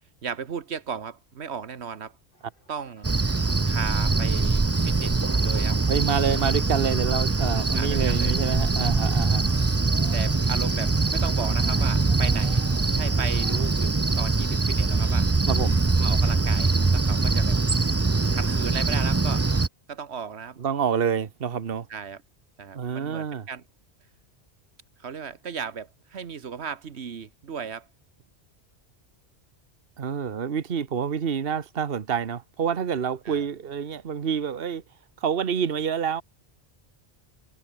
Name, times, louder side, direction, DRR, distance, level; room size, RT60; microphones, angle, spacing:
voice 1, 0.2-2.1 2.7-3.1 3.7-5.8 7.7-8.4 9.9-12.6 12.9-15.3 16.0-17.6 18.3-19.5 19.9-20.6 21.9-22.2 22.6-23.6 25.0-27.9 33.3-33.4, right 6 dB, 85° right, 1.5 m, -36 dB
sound 1, 2.3-13.7, left 1 dB, 55° left, 7.0 m, -50 dB
Cricket, 3.0-19.7, right 3 dB, 20° right, 0.4 m, -23 dB
voice 2, 5.9-9.5 15.5-15.8 20.6-21.9 22.7-23.5 30.0-34.8 35.2-36.2, right 7 dB, 60° right, 1.3 m, -27 dB
omnidirectional pair, 1.1 m